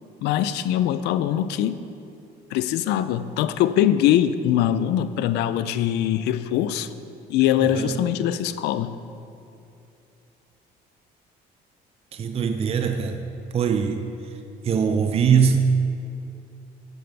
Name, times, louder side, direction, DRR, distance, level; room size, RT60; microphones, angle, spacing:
voice 1, 0.2-1.8 2.5-6.9 7.3-9.0, left 11 dB, 85° left, 13 dB, 0.5 m, -22 dB
voice 2, 7.6-8.1 12.1-13.3 13.5-14.1 14.6-15.6, right 6 dB, 35° right, 7 dB, 0.5 m, -22 dB
15.5 x 7.8 x 3.4 m, 2.6 s
cardioid pair, 110°, 17 cm